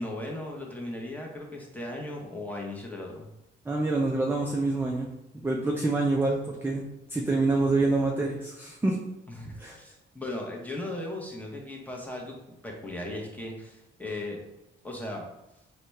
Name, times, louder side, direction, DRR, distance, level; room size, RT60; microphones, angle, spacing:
voice 1, 0.0-3.3 9.3-12.3 12.6-14.4 14.8-15.2, left 1 dB, 10° left, -1 dB, 0.9 m, -37 dB
voice 2, 3.7-5.1 5.4-6.8 7.1-9.0 9.6-9.8, right 2 dB, 10° right, -1 dB, 0.4 m, -26 dB
4.0 x 2.3 x 3.1 m, 0.91 s
cardioid pair, 90°, 20 cm